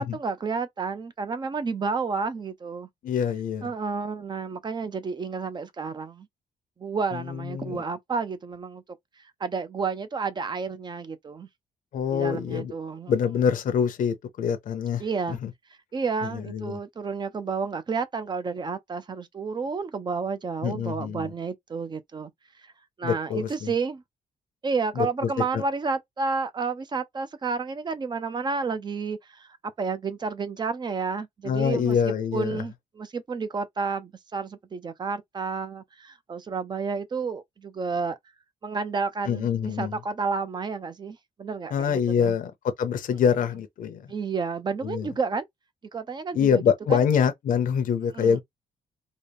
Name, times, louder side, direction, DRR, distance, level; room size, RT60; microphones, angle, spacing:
voice 1, 0.0-2.9 3.6-6.3 6.8-8.8 9.4-11.5 12.1-13.1 15.0-15.4 15.9-22.3 22.6-22.7 23.0-24.0 24.6-38.2 38.6-42.4 44.1-45.4 45.9-46.6 46.9-47.1 48.1-48.4, right 4 dB, 30° right, 0.6 m, -31 dB
voice 2, 3.0-3.7 7.1-7.8 11.9-12.7 13.1-15.5 16.2-16.8 20.6-21.3 23.0-23.7 25.0-25.6 31.4-32.6 39.3-40.0 41.7-42.5 42.8-44.1 44.8-45.1 46.3-48.4, left 7 dB, 65° left, 0.7 m, -25 dB
4.0 x 2.1 x 3.5 m
cardioid pair, 130°, 15 cm